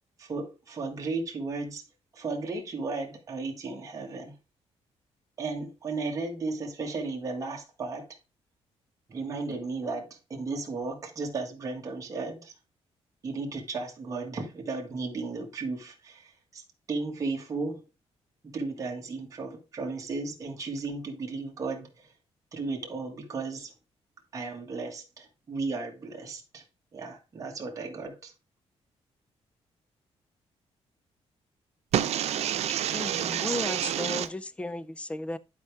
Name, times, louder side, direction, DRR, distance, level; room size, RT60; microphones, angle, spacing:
voice 1, 0.2-1.8 2.1-4.3 5.4-8.2 9.1-12.5 13.2-17.8 18.4-22.1 22.5-23.7 24.3-26.6 26.9-28.3, right 3 dB, 30° right, 1.8 m, -35 dB
voice 2, 31.9-34.3, right 10 dB, 75° right, 0.9 m, -28 dB
voice 3, 32.9-35.4, left 2 dB, 10° left, 0.5 m, -34 dB
11.0 x 4.8 x 3.4 m
wide cardioid pair, 175°, 11 cm